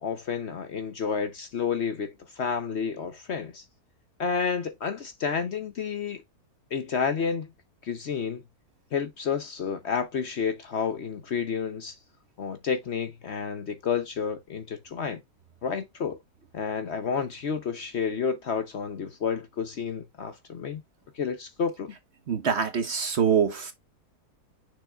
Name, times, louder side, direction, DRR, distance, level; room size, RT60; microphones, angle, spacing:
voice 1, 0.0-3.6 4.2-6.2 6.7-7.5 7.8-8.4 8.9-12.0 12.4-15.2 15.6-16.2 16.5-20.8 21.1-21.9, left 6 dB, 55° left, 0.9 m, -30 dB
voice 2, 22.3-23.7, right 7 dB, 50° right, 1.0 m, -24 dB
6.5 x 6.2 x 2.3 m
omnidirectional pair, 1.6 m